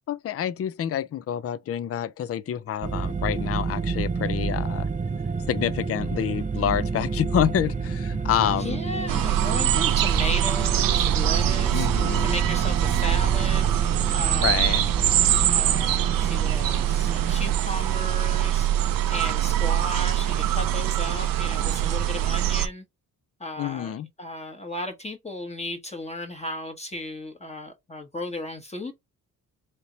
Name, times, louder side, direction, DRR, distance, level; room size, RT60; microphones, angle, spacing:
voice 1, 0.1-4.9 5.5-8.8 11.7-12.3 14.4-14.8 23.6-24.1, left 10 dB, 40° left, 0.5 m, -27 dB
sound 1, 2.8-17.6, right 4 dB, 20° right, 0.6 m, -29 dB
voice 2, 8.5-11.9 12.2-13.7 14.1-14.9 15.5-18.7 19.1-22.8 23.4-28.9, left 1 dB, 20° left, 1.1 m, -35 dB
sound 2, 9.1-22.7, right 12 dB, 65° right, 0.6 m, -23 dB
3.3 x 2.9 x 3.9 m
cardioid pair, 70°, 36 cm